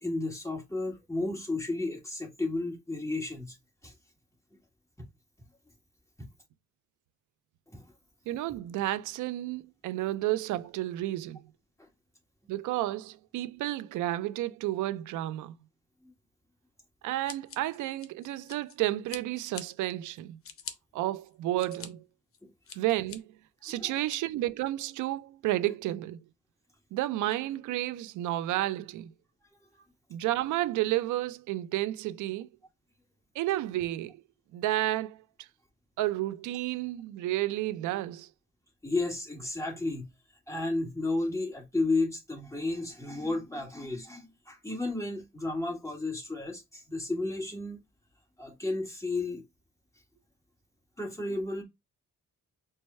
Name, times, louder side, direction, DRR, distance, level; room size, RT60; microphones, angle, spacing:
voice 1, 0.0-3.5 3.8-3.9 7.7-7.8 23.8-23.9 38.8-40.1 40.5-47.8 48.4-49.4 51.0-51.6, left 2 dB, 10° left, 1.6 m, -32 dB
voice 2, 8.3-11.4 12.5-15.5 17.0-20.4 20.9-22.0 22.7-23.3 23.6-26.2 26.9-29.1 30.1-32.5 33.4-34.2 34.5-35.5 36.0-38.3, right 15 dB, 80° right, 0.5 m, -31 dB
Scissors, 17.3-18.8 19.1-19.6 20.1-20.7 21.3-21.9 22.3-23.2 23.7-24.2, left 7 dB, 50° left, 0.8 m, -44 dB
4.6 x 2.2 x 4.2 m
cardioid pair, 90°, 30 cm